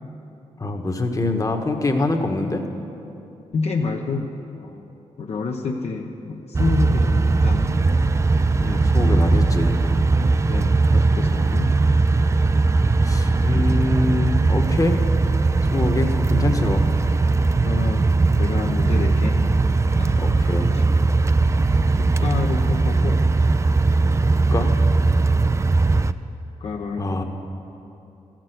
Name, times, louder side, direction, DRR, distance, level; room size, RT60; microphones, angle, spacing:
voice 1, 0.6-2.7 8.6-9.8 13.0-15.0 15.7-16.9 20.2-20.7 24.0-24.7 27.0-27.2, left 2 dB, 25° left, 4 dB, 1.1 m, -24 dB
voice 2, 3.5-4.9 5.2-7.7 10.2-11.7 17.6-19.4 20.0-20.3 20.7-20.8 22.0-23.2 24.1-24.7 25.4-25.6 26.6-27.2, left 4 dB, 60° left, 1 dB, 0.8 m, -29 dB
sound 1, 6.5-26.1, right 3 dB, 25° right, 0.4 m, -19 dB
13.5 x 6.0 x 8.0 m, 2.8 s
cardioid pair, 65°, 13 cm